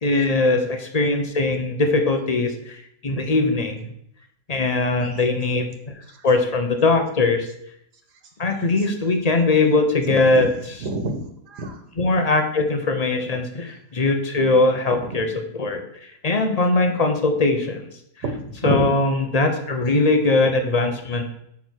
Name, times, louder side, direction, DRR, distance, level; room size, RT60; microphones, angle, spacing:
voice 1, 0.0-2.8 3.0-3.8 4.5-5.7 6.2-7.5 8.4-10.8 12.0-15.8 16.2-17.8 18.6-21.2, left 3 dB, 30° left, 5 dB, 0.8 m, -20 dB
voice 2, 10.1-10.5 10.8-11.8 15.1-15.2 18.3-18.9, right 2 dB, 85° right, 5 dB, 1.8 m, -28 dB
8.5 x 3.7 x 6.3 m, 0.73 s
omnidirectional pair, 1.7 m